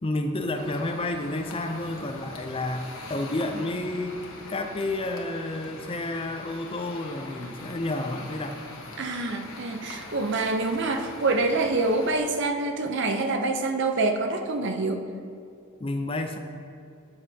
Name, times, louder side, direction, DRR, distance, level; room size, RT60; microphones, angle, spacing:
voice 1, 0.0-8.6 15.8-16.4, left 2 dB, 25° left, 6 dB, 0.5 m, -30 dB
sound 1, 0.5-12.2, left 2 dB, 65° left, 1.2 m, -42 dB
voice 2, 9.0-15.0, right 3 dB, 50° right, 6 dB, 0.7 m, -26 dB
12.5 x 8.2 x 2.8 m, 2.4 s
head